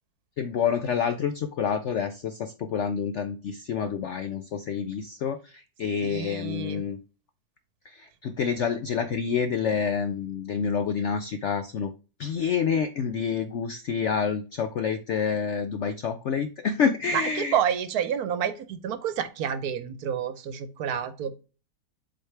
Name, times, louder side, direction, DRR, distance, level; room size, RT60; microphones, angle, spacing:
voice 1, 0.4-7.0 7.8-11.9 12.2-17.6, left 6 dB, 70° left, 10 dB, 0.6 m, -28 dB
voice 2, 6.0-6.9 17.1-21.3, right 8 dB, 70° right, 13 dB, 1.2 m, -29 dB
7.7 x 4.2 x 3.2 m, 0.33 s
omnidirectional pair, 1.8 m